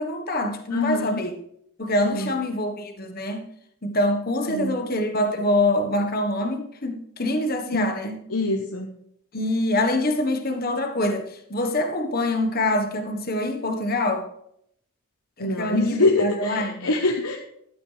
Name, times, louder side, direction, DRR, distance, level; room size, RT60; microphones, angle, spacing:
voice 1, 0.0-1.4 1.8-3.4 3.8-8.2 9.3-14.3 15.4-16.9, left 1 dB, 40° left, 5 dB, 1.4 m, -25 dB
voice 2, 0.7-1.2 2.0-2.3 4.5-4.8 7.7-7.9 8.3-9.0 15.4-17.4, left 2 dB, 85° left, 1 dB, 1.2 m, -24 dB
14.0 x 11.5 x 3.4 m, 0.73 s
head